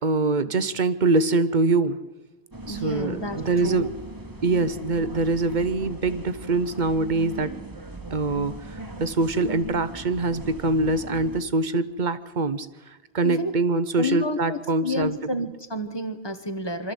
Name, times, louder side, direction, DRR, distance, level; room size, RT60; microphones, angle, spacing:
voice 1, 0.0-2.0 2.7-3.9 4.4-7.5 8.1-12.7 13.1-15.2, right 3 dB, 50° right, 13 dB, 1.0 m, -24 dB
sound 1, 2.5-11.4, right 1 dB, 20° right, 1.3 m, -39 dB
voice 2, 2.7-3.9 13.2-13.5 14.0-16.9, left 1 dB, 25° left, 9 dB, 1.4 m, -30 dB
24.5 x 13.0 x 8.1 m, 1.2 s
omnidirectional pair, 1.0 m